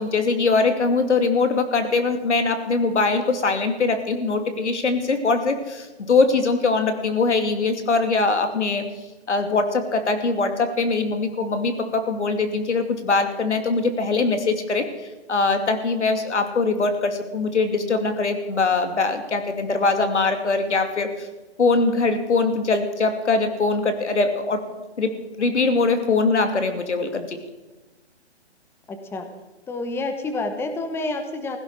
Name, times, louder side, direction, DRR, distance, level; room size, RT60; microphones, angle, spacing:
voice 1, 0.0-8.8 9.3-14.9 15.3-21.3 21.6-24.6 25.0-27.4, left 3 dB, 80° left, 7 dB, 2.7 m, -22 dB
voice 2, 28.9-29.3 29.7-31.6, left 2 dB, 5° left, 7 dB, 1.0 m, -28 dB
16.5 x 16.0 x 4.9 m, 1.2 s
hypercardioid pair, 140°, 34 cm